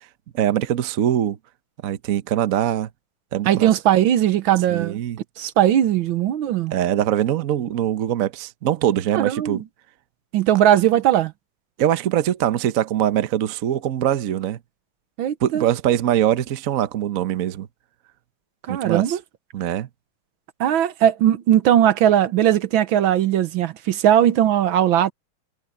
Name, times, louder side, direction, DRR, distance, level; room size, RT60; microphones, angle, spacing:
voice 1, 0.3-1.4 1.8-2.9 3.3-3.7 4.7-5.2 6.7-9.6 11.8-14.6 15.4-17.7 18.7-19.2 19.5-19.9, right 11 dB, 55° right, 1.0 m, -22 dB
voice 2, 3.5-5.0 5.4-6.7 9.1-9.6 10.3-11.3 15.2-15.6 18.7-19.2 20.6-25.1, right 11 dB, 70° right, 1.6 m, -18 dB
omnidirectional pair, 2.3 m